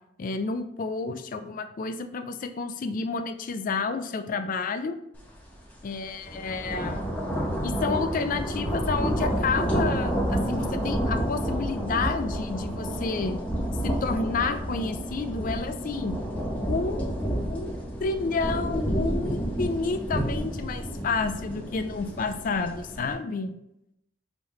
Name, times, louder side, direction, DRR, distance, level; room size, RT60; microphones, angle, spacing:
voice 1, 0.2-5.0 5.8-7.0 7.6-13.4 13.8-16.2 16.7-17.1 17.5-17.7 18.0-23.6, left 4 dB, 45° left, 9 dB, 0.4 m, -30 dB
sound 1, 5.3-5.5 5.9-23.1, right 1 dB, 10° left, 1.0 m, -30 dB
5.5 x 3.1 x 3.1 m, 0.82 s
head